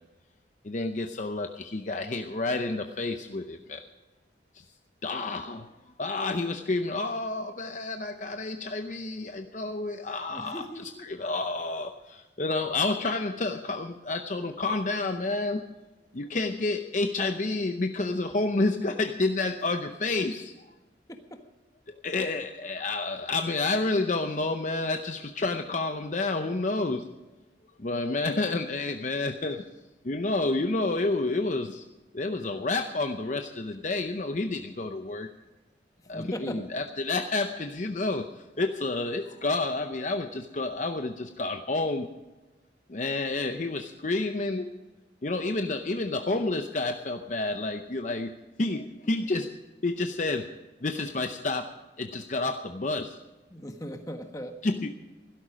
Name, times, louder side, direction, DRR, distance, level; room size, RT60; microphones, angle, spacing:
voice 1, 0.6-3.8 5.0-5.7 6.0-10.6 11.0-15.6 16.1-20.5 21.9-27.1 27.8-29.6 30.0-31.8 32.1-35.3 36.1-38.3 38.6-42.1 42.9-44.7 45.2-48.3 48.6-49.5 49.8-50.5 50.8-53.2 54.6-54.9, left 2 dB, 40° left, 6 dB, 0.7 m, -29 dB
voice 2, 10.3-11.1 21.1-21.4 36.0-36.7 53.5-54.6, equal, 20° left, 5 dB, 1.4 m, -39 dB
16.0 x 12.5 x 5.1 m, 1.1 s
head